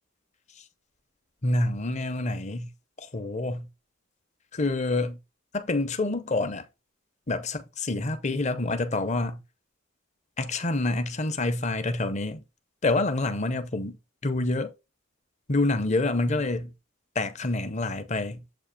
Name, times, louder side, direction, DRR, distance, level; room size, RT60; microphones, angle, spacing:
voice 1, 1.4-2.7 3.0-3.7 4.5-5.2 5.5-6.7 7.3-9.4 10.4-12.4 12.8-14.0 14.2-14.7 15.5-16.7 17.2-18.4, left 2 dB, 35° left, 0.7 m, -27 dB
7.7 x 2.8 x 5.0 m
head